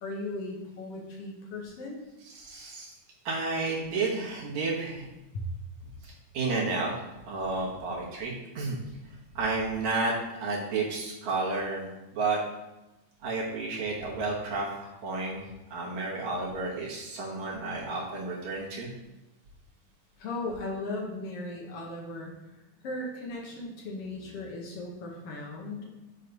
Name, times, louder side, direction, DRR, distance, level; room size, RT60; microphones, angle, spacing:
voice 1, 0.0-2.0 5.3-5.5 20.2-22.3 22.8-25.9, left 2 dB, 65° left, -1 dB, 1.5 m, -37 dB
voice 2, 2.3-2.9 3.3-5.1 6.0-6.9 7.3-8.8 9.4-10.1 10.4-11.9 12.1-12.4 13.2-15.4 15.7-18.9, right 3 dB, 65° right, -4 dB, 2.4 m, -31 dB
7.9 x 3.1 x 5.2 m, 1.0 s
omnidirectional pair, 3.6 m